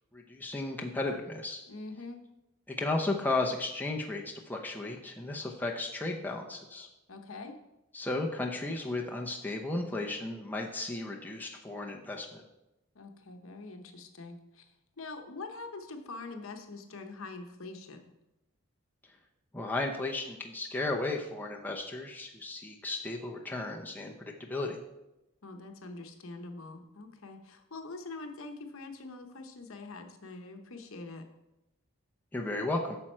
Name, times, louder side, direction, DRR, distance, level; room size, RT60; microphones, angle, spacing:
voice 1, 0.1-1.6 2.7-6.9 7.9-12.4 19.5-24.1 24.5-24.8 32.3-33.0, left 2 dB, 10° left, 0 dB, 0.7 m, -34 dB
voice 2, 1.7-2.2 7.1-7.6 12.9-18.0 25.4-31.3, left 3 dB, 70° left, 5 dB, 0.9 m, -44 dB
8.9 x 6.1 x 4.4 m, 0.94 s
head